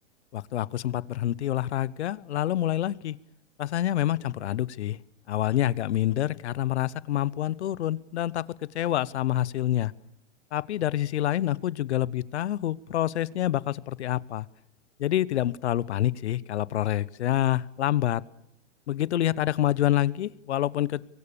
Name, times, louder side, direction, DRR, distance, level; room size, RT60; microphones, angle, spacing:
voice 1, 0.3-3.2 3.6-5.0 5.3-8.4 8.7-9.9 10.5-14.5 15.0-18.2 18.9-21.0, left 13 dB, 65° left, 21 dB, 0.9 m, -27 dB
25.5 x 23.5 x 6.9 m, 0.75 s
hypercardioid pair, 165°, 37 cm